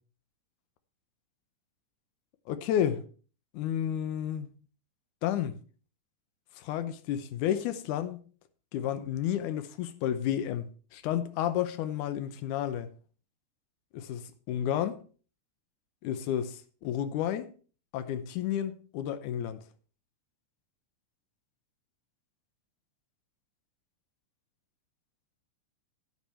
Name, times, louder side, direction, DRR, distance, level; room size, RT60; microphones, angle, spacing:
voice 1, 2.5-3.0 3.5-4.5 5.2-5.6 6.6-8.2 8.7-10.7 10.9-12.9 13.9-15.0 16.0-17.5 17.9-19.6, left 10 dB, 85° left, 2.4 m, -31 dB
10.5 x 9.1 x 4.4 m
omnidirectional pair, 3.5 m